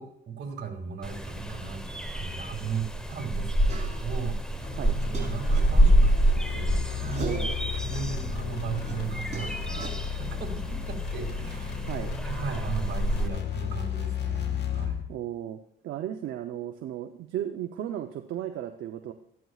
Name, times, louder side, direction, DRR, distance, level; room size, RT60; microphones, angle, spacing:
voice 1, 0.0-4.8 5.1-7.4 7.8-11.8 12.2-15.0, right 6 dB, 60° right, 3 dB, 2.3 m, -37 dB
sound 1, 1.0-13.3, right 1 dB, 5° left, 1.1 m, -27 dB
sound 2, 3.7-4.2 4.6-6.5 6.8-7.6 8.1-9.9, right 4 dB, 35° right, 3.7 m, -42 dB
sound 3, 4.6-15.1, left 8 dB, 60° left, 1.5 m, -34 dB
voice 2, 7.2-7.5 11.9-12.1 15.1-15.6 15.8-19.1, right 11 dB, 80° right, 6 dB, 0.7 m, -35 dB
13.5 x 12.5 x 2.4 m, 0.77 s
cardioid pair, 90°, 20 cm